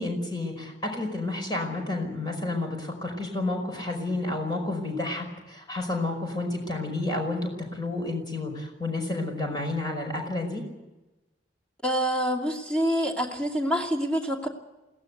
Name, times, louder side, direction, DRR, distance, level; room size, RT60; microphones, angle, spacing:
voice 1, 0.0-10.6, left 2 dB, 25° left, 2 dB, 5.2 m, -30 dB
voice 2, 11.8-14.5, equal, 5° left, 0 dB, 2.7 m, -26 dB
21.5 x 17.5 x 8.2 m, 1.1 s
head